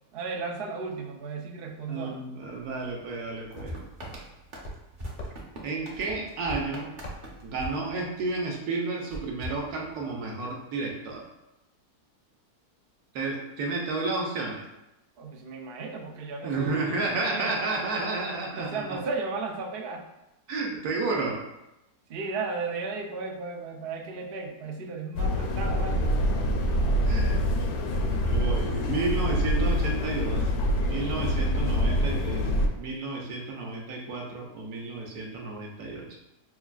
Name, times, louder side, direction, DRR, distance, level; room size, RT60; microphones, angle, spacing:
voice 1, 0.1-2.3 15.2-17.5 18.6-20.0 22.1-26.2, right 4 dB, 90° right, 2 dB, 0.5 m, -35 dB
voice 2, 1.9-3.8 5.6-6.9 7.4-11.3 13.1-14.7 16.4-19.0 20.5-21.4 27.1-27.4 28.2-30.5 30.8-32.5 32.7-36.1, right 3 dB, 70° right, -1 dB, 1.2 m, -31 dB
sound 1, 2.6-7.8, equal, 50° left, 0.6 m, -46 dB
sound 2, 3.6-8.5 9.1-10.3, right 1 dB, 45° right, 0.6 m, -42 dB
sound 3, 25.2-32.7, equal, 70° left, 0.9 m, -25 dB
5.8 x 2.4 x 2.3 m, 0.91 s
omnidirectional pair, 1.7 m